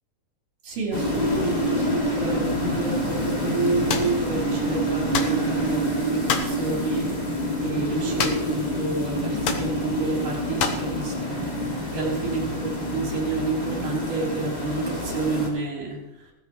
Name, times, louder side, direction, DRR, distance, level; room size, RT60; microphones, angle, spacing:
voice 1, 0.6-7.1 7.6-11.4 11.8-16.3, right 3 dB, 85° right, -1 dB, 5.1 m, -29 dB
sound 1, 0.9-15.5, equal, 15° left, 2.7 m, -27 dB
sound 2, 3.9-4.1 5.1-5.4 6.3-6.6 8.2-8.6 8.8-8.9 9.4-9.7 10.6-10.9, left 6 dB, 55° left, 1.7 m, -26 dB
16.5 x 14.5 x 3.1 m, 0.99 s
omnidirectional pair, 3.6 m